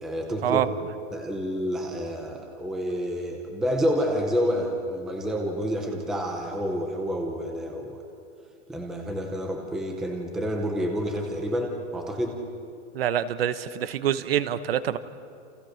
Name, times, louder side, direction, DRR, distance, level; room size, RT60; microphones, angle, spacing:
voice 1, 0.0-0.6 1.1-8.0 8.7-12.4, equal, ahead, 1 dB, 0.6 m, -29 dB
voice 2, 12.9-15.0, right 10 dB, 50° right, 13 dB, 1.1 m, -25 dB
29.5 x 29.0 x 6.5 m, 2.4 s
supercardioid pair, 180°, 38 cm